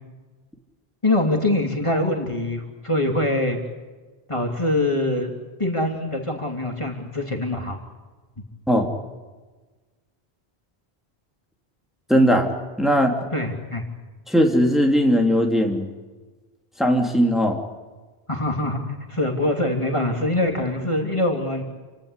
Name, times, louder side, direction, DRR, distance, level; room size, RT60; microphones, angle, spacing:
voice 1, 1.0-3.6 4.3-5.3 5.6-7.8 13.3-13.8 18.3-18.8 19.1-21.6, left 1 dB, 30° left, 2 dB, 3.1 m, -23 dB
voice 2, 12.1-12.5 12.8-13.1 14.3-15.9 16.8-17.6, equal, ahead, 1 dB, 3.0 m, -18 dB
29.0 x 17.5 x 8.3 m, 1.3 s
omnidirectional pair, 1.0 m